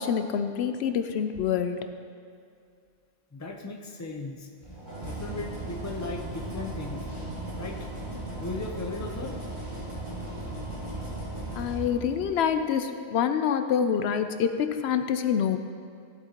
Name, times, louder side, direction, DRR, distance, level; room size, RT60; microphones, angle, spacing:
voice 1, 0.0-1.9 11.5-15.6, left 8 dB, 85° left, 9 dB, 0.8 m, -26 dB
voice 2, 3.3-4.5 5.1-7.0 7.6-7.8 8.4-9.4, left 3 dB, 20° left, 2 dB, 0.7 m, -37 dB
sound 1, 4.6-12.6, right 2 dB, 45° right, 2.5 m, -37 dB
15.0 x 7.9 x 2.9 m, 2.3 s
omnidirectional pair, 1.1 m